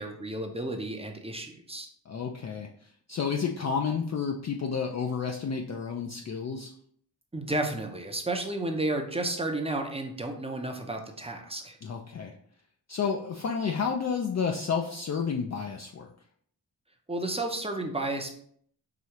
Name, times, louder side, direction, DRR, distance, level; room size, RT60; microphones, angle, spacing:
voice 1, 0.0-1.9 7.3-11.8 17.1-18.3, right 2 dB, 15° right, 3 dB, 0.6 m, -32 dB
voice 2, 2.1-6.7 11.8-12.3 12.9-16.1, left 6 dB, 40° left, 2 dB, 0.4 m, -31 dB
4.8 x 2.7 x 2.9 m, 0.63 s
cardioid pair, 75°, 43 cm